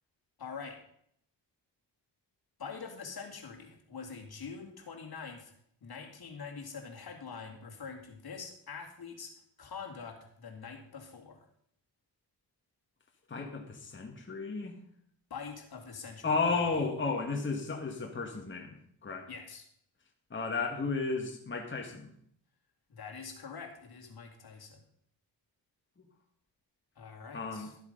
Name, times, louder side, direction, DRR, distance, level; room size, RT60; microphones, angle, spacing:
voice 1, 0.4-0.8 2.6-5.5 5.8-11.5 15.3-16.3 19.3-19.7 22.9-24.8 27.0-27.7, left 5 dB, 55° left, 3 dB, 2.3 m, -45 dB
voice 2, 13.3-14.7 16.2-19.3 20.3-22.1 27.3-27.7, left 4 dB, 25° left, 1 dB, 1.7 m, -33 dB
13.0 x 7.9 x 5.3 m, 0.67 s
cardioid pair, 100°, 43 cm